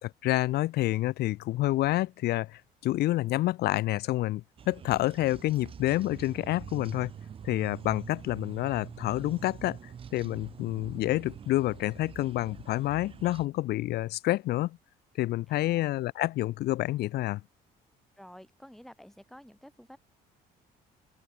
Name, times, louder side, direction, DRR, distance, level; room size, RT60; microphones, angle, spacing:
voice 1, 0.0-7.1 7.4-14.8 15.2-17.4, left 16 dB, 70° left, 0.7 m, -28 dB
sound 1, 4.6-13.5, right 7 dB, 35° right, 0.6 m, -45 dB
voice 2, 15.5-15.9 18.2-20.0, equal, ahead, 5.3 m, -51 dB
open air
cardioid pair, 110°, 17 cm